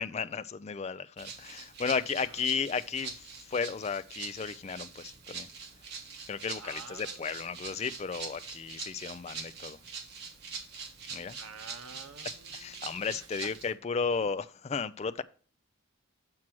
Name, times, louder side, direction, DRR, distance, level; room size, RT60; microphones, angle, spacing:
voice 1, 0.0-5.5 6.3-9.8 11.1-11.4 12.5-15.2, left 5 dB, 30° left, 0.3 m, -34 dB
Rattle (instrument), 1.2-13.7, right 5 dB, 50° right, 1.5 m, -44 dB
voice 2, 6.6-7.6 11.3-13.5, right 5 dB, 85° right, 0.9 m, -50 dB
7.5 x 4.6 x 6.0 m
head